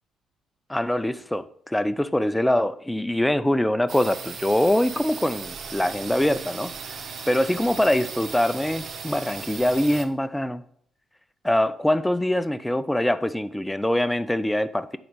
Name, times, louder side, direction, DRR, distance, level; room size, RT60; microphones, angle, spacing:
voice 1, 0.7-6.7 7.3-10.6 11.4-15.0, left 1 dB, 5° left, 0.4 m, -23 dB
sound 1, 3.9-10.1, right 6 dB, 55° right, 0.7 m, -37 dB
7.7 x 4.1 x 5.1 m
cardioid pair, 105°, 0 cm